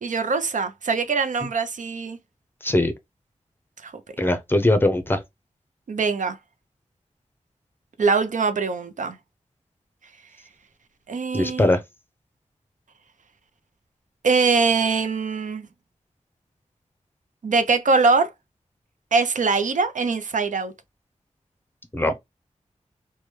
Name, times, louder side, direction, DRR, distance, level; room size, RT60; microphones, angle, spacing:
voice 1, 0.0-2.2 3.8-3.9 5.9-6.4 8.0-9.1 11.1-11.7 14.2-15.7 17.4-18.3 19.1-20.7, right 4 dB, 90° right, 0.5 m, -22 dB
voice 2, 4.2-5.2 11.3-11.8 21.9-22.1, left 1 dB, 15° left, 0.6 m, -20 dB
3.1 x 2.2 x 3.0 m
wide cardioid pair, 100°, 13 cm